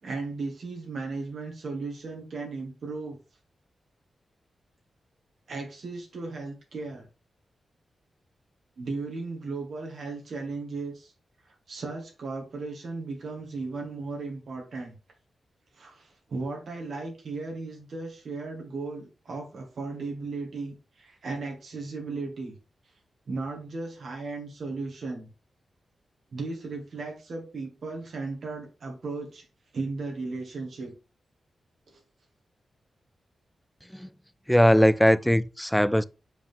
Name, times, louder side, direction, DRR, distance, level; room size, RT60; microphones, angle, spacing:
voice 1, 0.0-3.2 5.5-7.1 8.8-11.1 11.5-14.9 15.7-22.5 23.3-25.3 26.3-29.5 29.7-30.9 31.9-32.0, right 3 dB, 65° right, 1.9 m, -36 dB
voice 2, 34.5-36.0, equal, ahead, 0.3 m, -20 dB
7.5 x 5.1 x 3.6 m
wide cardioid pair, 130°, 0 cm